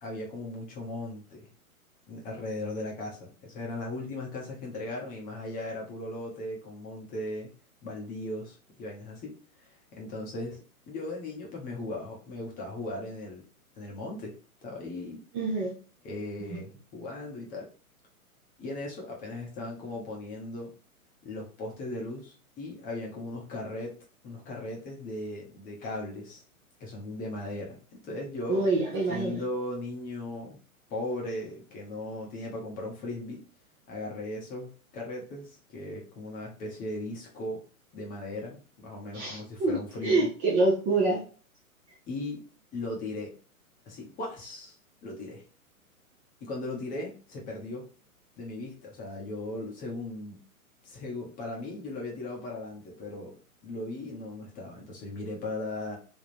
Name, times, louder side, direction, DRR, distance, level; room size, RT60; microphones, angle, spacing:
voice 1, 0.0-1.5 2.1-7.5 7.8-9.3 9.6-10.6 10.9-13.4 13.8-14.3 14.6-15.2 16.0-17.7 18.6-20.7 21.2-24.0 24.2-26.4 26.8-28.7 29.1-30.6 30.9-33.4 33.9-37.6 37.9-40.3 42.1-42.4 42.7-43.3 43.9-44.8 45.0-45.4 46.4-47.9 48.4-50.4 50.8-53.3 53.6-56.0, left 2 dB, 20° left, -1 dB, 0.9 m, -37 dB
voice 2, 15.3-15.7 16.5-16.6 28.5-29.4 39.1-39.8 40.0-41.2, right 3 dB, 20° right, -3 dB, 0.7 m, -26 dB
3.5 x 2.3 x 4.2 m, 0.38 s
hypercardioid pair, 125°, 44 cm